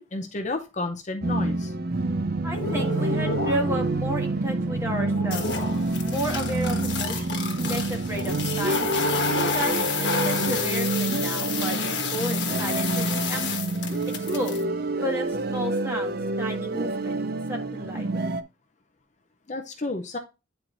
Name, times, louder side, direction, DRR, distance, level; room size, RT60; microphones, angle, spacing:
voice 1, 0.0-1.7 19.5-20.2, left 2 dB, 35° left, 6 dB, 0.6 m, -31 dB
sound 1, 1.2-18.4, right 2 dB, 50° right, 0.5 m, -27 dB
voice 2, 2.4-5.5 6.0-9.0 9.5-13.7 14.2-14.6 15.0-17.2 17.5-18.1, equal, 15° right, 0 dB, 1.5 m, -32 dB
sound 2, 2.5-3.9 4.3-14.6, left 5 dB, 55° left, 1.3 m, -30 dB
9.4 x 4.4 x 2.5 m, 0.28 s
head